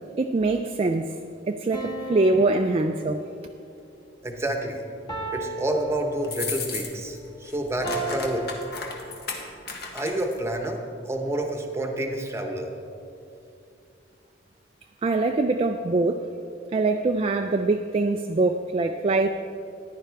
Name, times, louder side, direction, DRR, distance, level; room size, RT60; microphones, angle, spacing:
voice 1, 0.2-1.2 1.5-3.3 15.0-16.3 16.7-19.3, right 3 dB, 30° right, 5 dB, 0.3 m, -23 dB
sound 1, 1.7-3.6 5.1-6.7 7.8-9.5, right 1 dB, 25° left, 1.3 m, -36 dB
voice 2, 4.2-4.8 5.3-8.5 9.9-12.7, right 1 dB, 15° right, 3 dB, 1.0 m, -29 dB
sound 2, 6.2-7.2 7.4-10.4, left 4 dB, 60° left, 1.3 m, -34 dB
14.5 x 10.5 x 3.4 m, 2.7 s
head